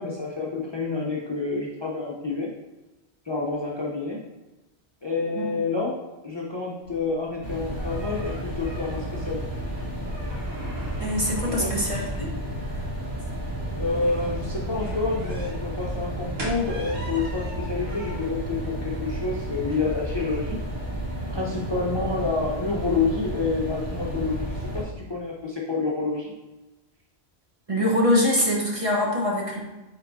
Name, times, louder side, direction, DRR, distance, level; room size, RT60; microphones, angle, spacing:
voice 1, 0.0-2.5 3.2-4.2 5.0-6.0 6.2-9.4 11.6-11.7 13.7-20.6 21.3-26.3, left 3 dB, 25° left, -3 dB, 0.8 m, -28 dB
sound 1, 6.8-20.7, equal, 70° right, 1.7 m, -43 dB
sound 2, 7.4-24.8, right 1 dB, 15° right, 2.0 m, -32 dB
voice 2, 11.0-12.3 27.7-29.6, left 1 dB, 35° right, -3 dB, 1.2 m, -23 dB
9.2 x 3.8 x 2.7 m, 1.1 s
omnidirectional pair, 1.1 m